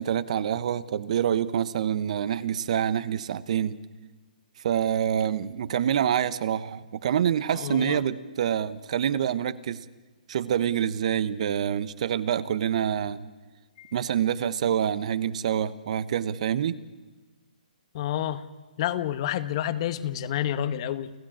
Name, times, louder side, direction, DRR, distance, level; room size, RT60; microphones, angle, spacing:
voice 1, 0.0-3.8 4.6-9.8 10.3-13.2 13.9-16.8, right 9 dB, 50° right, 15 dB, 1.0 m, -26 dB
voice 2, 7.5-8.0 13.8-13.9 17.9-18.4 18.8-21.1, left 11 dB, 40° left, 13 dB, 1.0 m, -29 dB
29.5 x 14.5 x 8.9 m, 1.3 s
hypercardioid pair, 150°, 5 cm